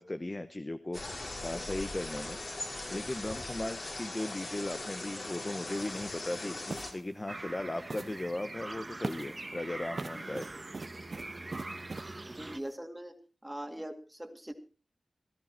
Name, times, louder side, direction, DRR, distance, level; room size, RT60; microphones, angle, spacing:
voice 1, 0.0-2.4 2.9-10.5, left 1 dB, 25° left, 10 dB, 1.0 m, -37 dB
sound 1, 0.9-6.9, left 2 dB, 55° left, 4.2 m, -40 dB
sound 2, 5.8-5.9 6.7-7.0 7.9-8.3 9.0-9.4 9.9-12.1, right 3 dB, 55° right, 0.9 m, -41 dB
sound 3, 7.3-12.6, right 2 dB, 35° right, 1.1 m, -43 dB
voice 2, 12.3-13.2 13.4-14.5, right 1 dB, 10° right, 6 dB, 2.3 m, -41 dB
18.0 x 12.5 x 4.4 m, 0.35 s
wide cardioid pair, 75°, 0 cm